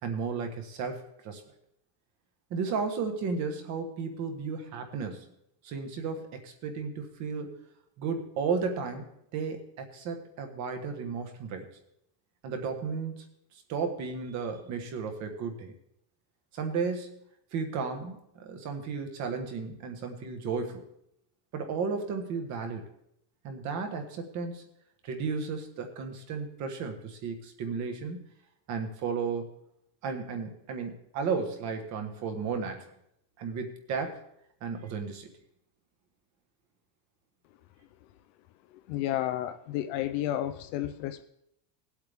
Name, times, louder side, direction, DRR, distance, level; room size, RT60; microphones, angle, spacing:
voice 1, 0.0-1.4 2.5-5.2 5.6-7.5 8.0-11.7 12.4-13.1 13.7-15.7 16.5-17.2 17.5-20.8 21.5-22.8 23.4-24.6 25.0-28.2 28.7-29.5 30.0-32.9 33.4-34.2 34.6-35.3, right 5 dB, 35° right, 5 dB, 1.4 m, -34 dB
voice 2, 38.7-41.2, left 13 dB, 45° left, 10 dB, 0.5 m, -32 dB
18.5 x 8.1 x 3.5 m, 0.76 s
cardioid pair, 175°, 49 cm